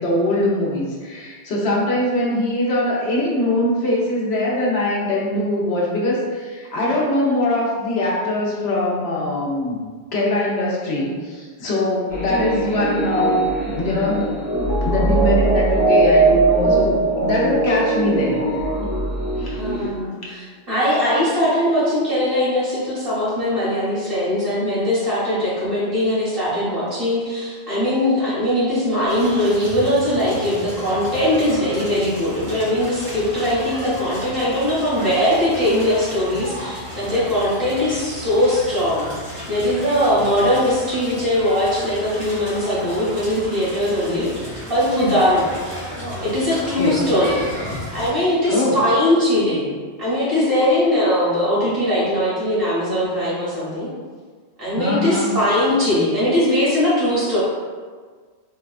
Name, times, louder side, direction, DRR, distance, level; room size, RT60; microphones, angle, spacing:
voice 1, 0.0-13.4 13.7-14.4 14.8-17.0 17.2-18.7 19.4-19.9 46.8-47.1 48.5-48.8 54.8-55.3, left 1 dB, 70° left, -5 dB, 1.0 m, -22 dB
sound 1, 12.1-19.9, right 2 dB, 35° left, 0.9 m, -20 dB
voice 2, 19.6-39.1 39.5-44.3 44.7-45.5 46.2-47.4 47.9-53.9 54.6-57.4, left 1 dB, 55° right, -11 dB, 1.9 m, -20 dB
Crackle, 29.1-48.1, equal, 70° right, 1.9 m, -34 dB
4.6 x 2.2 x 2.4 m, 1.5 s
omnidirectional pair, 1.2 m